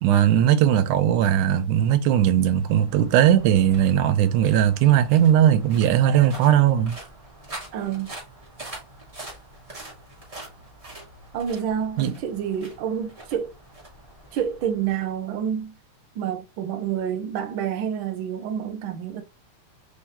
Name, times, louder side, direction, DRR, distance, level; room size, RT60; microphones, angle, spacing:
voice 1, 0.0-7.0 12.0-12.1, right 10 dB, 85° right, 2.2 m, -19 dB
sound 1, 2.4-15.6, right 1 dB, 20° right, 0.9 m, -44 dB
voice 2, 7.7-8.1 11.3-13.5 14.3-15.7 16.1-19.2, right 8 dB, 70° right, 1.2 m, -28 dB
5.2 x 3.5 x 2.7 m
omnidirectional pair, 3.5 m